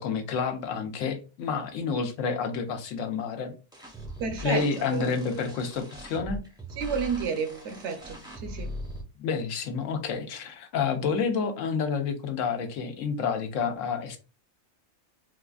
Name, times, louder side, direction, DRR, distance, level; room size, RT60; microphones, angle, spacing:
voice 1, 0.0-3.6 4.4-6.4 9.2-14.2, left 5 dB, 90° left, 1.0 m, -29 dB
sound 1, 3.7-9.0, equal, 5° right, 0.5 m, -40 dB
voice 2, 4.2-5.2 6.8-8.8, right 6 dB, 70° right, 0.9 m, -31 dB
4.1 x 2.4 x 2.3 m
omnidirectional pair, 1.3 m